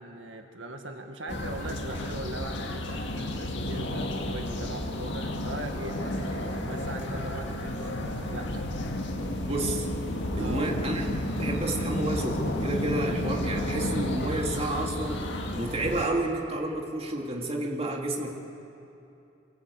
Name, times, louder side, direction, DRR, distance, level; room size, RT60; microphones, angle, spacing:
voice 1, 0.0-8.6 10.4-10.7, right 2 dB, 85° right, 4 dB, 1.8 m, -40 dB
sound 1, 1.3-16.1, left 1 dB, 70° left, 2.1 m, -32 dB
voice 2, 9.4-9.9 10.4-15.3 15.5-18.3, right 2 dB, 35° right, 0 dB, 2.2 m, -30 dB
24.0 x 17.0 x 8.4 m, 2.9 s
head